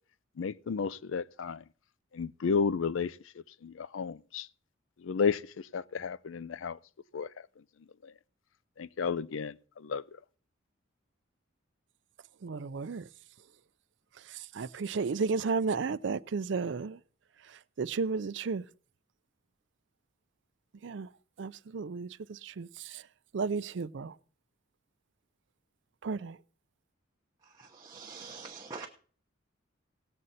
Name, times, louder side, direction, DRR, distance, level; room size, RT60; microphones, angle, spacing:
voice 1, 0.4-1.6 2.1-3.2 3.6-4.5 5.0-6.8 7.1-7.3 8.0-8.1 8.8-10.0, left 5 dB, 75° left, 0.4 m, -32 dB
voice 2, 12.4-13.0 14.5-17.0 17.8-18.6 20.8-21.1 21.4-23.0 23.3-24.1 26.0-26.4, right 4 dB, 65° right, 0.4 m, -33 dB
voice 3, 27.6-28.9, right 4 dB, 20° right, 0.9 m, -44 dB
17.5 x 7.7 x 4.1 m
head